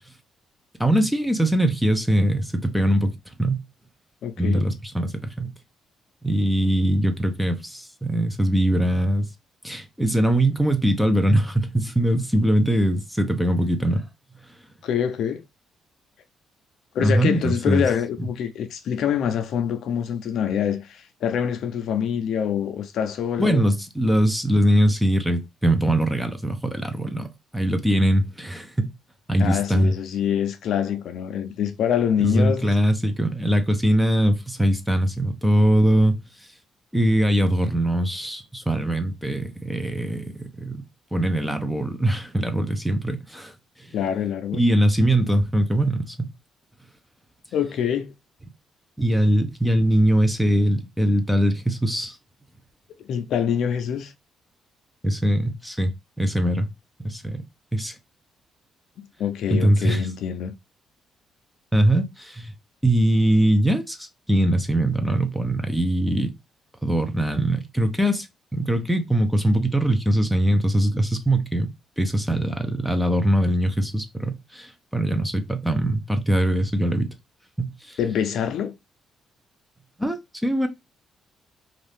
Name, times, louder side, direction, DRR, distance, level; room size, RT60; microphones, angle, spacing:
voice 1, 0.8-3.1 3.4-3.6 4.4-5.5 6.2-9.3 9.6-14.0 17.0-17.9 23.4-28.9 29.3-29.9 32.2-36.2 36.9-40.8 41.1-43.5 43.8-43.9 44.5-46.3 49.0-52.2 55.0-55.9 56.2-56.7 57.0-57.4 57.7-58.0 59.5-60.1 61.7-62.5 62.8-66.3 66.8-68.3 68.5-71.7 72.0-77.1 77.6-78.0 80.0-80.7, right 1 dB, 5° right, 0.6 m, -22 dB
voice 2, 4.2-4.6 14.8-15.4 16.9-23.6 29.4-32.7 43.9-44.6 47.5-48.1 53.1-54.1 59.0-60.5 78.0-78.7, left 8 dB, 75° left, 0.5 m, -25 dB
2.6 x 2.4 x 3.4 m
cardioid pair, 90°, 0 cm